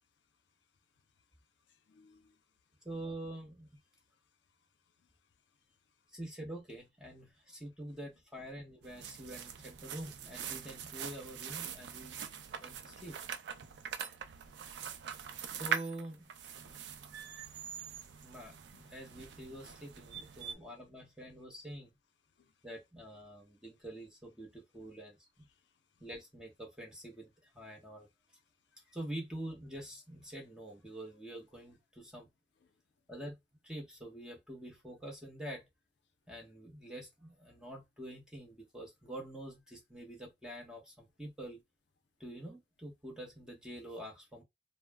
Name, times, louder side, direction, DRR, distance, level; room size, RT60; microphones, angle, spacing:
voice 1, 1.7-2.4 5.0-5.1 12.8-13.0 14.5-14.6 16.6-16.9 18.7-18.8 20.1-20.6 22.4-22.5 26.0-26.1, left 4 dB, 85° left, 0.4 m, -66 dB
voice 2, 2.8-3.7 6.1-12.2 12.6-13.2 15.5-16.3 18.2-18.6 18.9-21.9 22.6-25.5 26.0-28.1 28.9-32.3 33.1-33.4 33.6-35.7 36.3-41.6 42.2-44.4, right 1 dB, 5° right, 0.8 m, -46 dB
sound 1, 8.8-20.5, right 7 dB, 80° right, 0.4 m, -43 dB
2.2 x 2.0 x 3.3 m
head